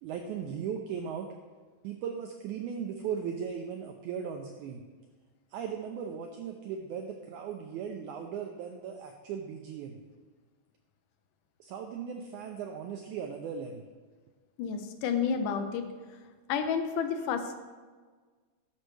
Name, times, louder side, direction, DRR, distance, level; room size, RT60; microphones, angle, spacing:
voice 1, 0.0-1.3 1.8-4.8 5.5-10.0 11.6-13.8, right 7 dB, 80° right, 4 dB, 1.8 m, -37 dB
voice 2, 14.6-15.9 16.5-17.5, left 6 dB, 80° left, 7 dB, 2.1 m, -30 dB
11.0 x 6.4 x 3.3 m, 1.4 s
omnidirectional pair, 3.8 m